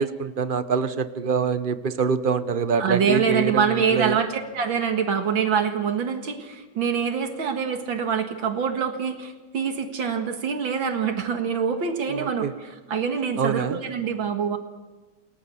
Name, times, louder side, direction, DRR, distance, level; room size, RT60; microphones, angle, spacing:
voice 1, 0.0-3.6 3.9-4.2 12.2-12.5 13.4-13.8, right 5 dB, 50° right, 12 dB, 0.6 m, -25 dB
voice 2, 2.8-14.6, right 6 dB, 75° right, 6 dB, 2.5 m, -25 dB
29.0 x 20.0 x 7.1 m, 1.2 s
omnidirectional pair, 2.2 m